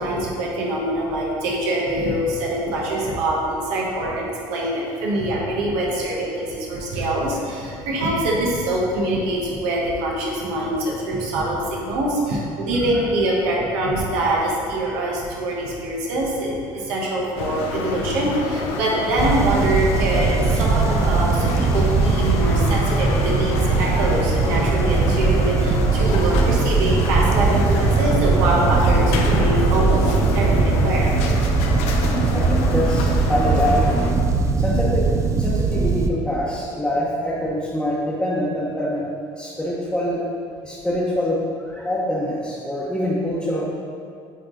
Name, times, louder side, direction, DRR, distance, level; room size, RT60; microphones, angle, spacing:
voice 1, 0.0-31.6, right 1 dB, 85° right, -3 dB, 1.4 m, -24 dB
sound 1, 17.4-34.1, left 4 dB, 75° left, 0.7 m, -28 dB
sound 2, 19.2-36.1, right 4 dB, 30° right, 0.5 m, -20 dB
voice 2, 32.3-34.0 34.6-39.0 39.4-40.2 40.6-43.7, left 1 dB, 5° left, -8 dB, 1.0 m, -25 dB
8.1 x 3.3 x 3.9 m, 2.4 s
supercardioid pair, 100°, 11 cm